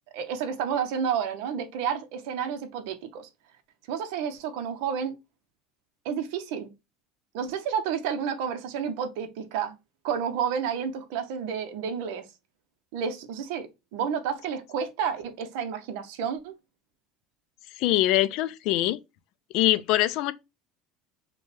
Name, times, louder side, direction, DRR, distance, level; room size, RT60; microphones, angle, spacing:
voice 1, 0.1-3.3 3.9-5.2 6.0-6.7 7.3-9.7 10.0-12.2 12.9-16.5, right 7 dB, 70° right, 0.8 m, -30 dB
voice 2, 17.8-19.0 19.5-20.3, left 15 dB, 55° left, 0.4 m, -23 dB
5.3 x 2.3 x 3.3 m
cardioid pair, 150°, 0 cm